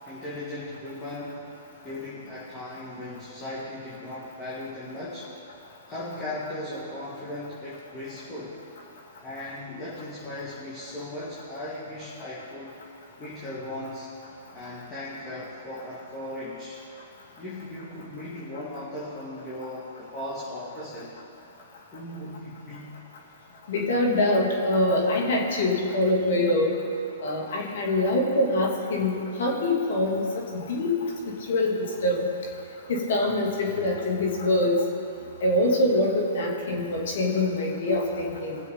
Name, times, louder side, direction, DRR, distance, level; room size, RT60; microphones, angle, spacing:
voice 1, 0.1-1.4 1.8-5.3 5.9-8.6 9.2-12.8 13.2-14.1 14.5-16.9 17.4-21.2 21.9-23.0 33.6-33.7, left 1 dB, 25° left, -8 dB, 2.7 m, -37 dB
voice 2, 23.7-26.8 27.2-30.3 30.5-30.9 31.3-32.2 32.9-34.7 35.4-38.6, left 1 dB, 65° left, -1 dB, 2.8 m, -24 dB
21.0 x 7.6 x 4.0 m, 2.7 s
hypercardioid pair, 120°, 0 cm